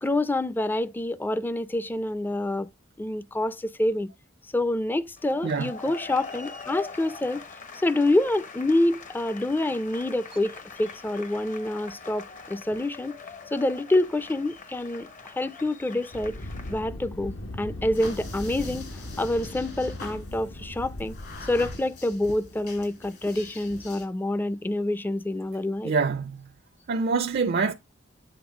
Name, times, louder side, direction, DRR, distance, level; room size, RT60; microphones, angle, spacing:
voice 1, 0.0-2.7 3.0-4.1 4.5-7.4 7.7-13.2 13.5-16.3 16.7-21.1 21.5-25.9, left 1 dB, 10° left, 0.4 m, -27 dB
sound 1, 5.2-16.8, left 4 dB, 40° left, 0.8 m, -43 dB
Thunder, 16.1-21.8, left 1 dB, 75° left, 1.0 m, -38 dB
sound 2, 17.9-24.0, left 2 dB, 60° left, 2.1 m, -43 dB
voice 2, 25.8-26.4 26.9-27.7, right 4 dB, 50° right, 0.4 m, -25 dB
7.9 x 3.8 x 4.7 m
head